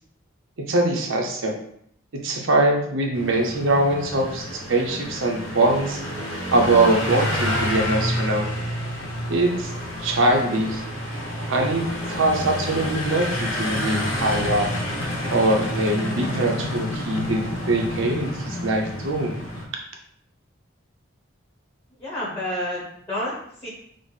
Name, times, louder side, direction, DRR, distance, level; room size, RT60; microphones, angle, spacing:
voice 1, 0.7-1.6 2.1-6.0 6.5-8.4 9.3-9.7 10.0-10.8 11.5-14.7 15.3-19.3, right 2 dB, 75° right, 1 dB, 0.6 m, -22 dB
sound 1, 3.1-19.6, left 1 dB, 90° left, 0.8 m, -29 dB
voice 2, 22.0-23.7, left 1 dB, 10° left, -6 dB, 0.9 m, -30 dB
4.0 x 2.0 x 3.2 m, 0.69 s
head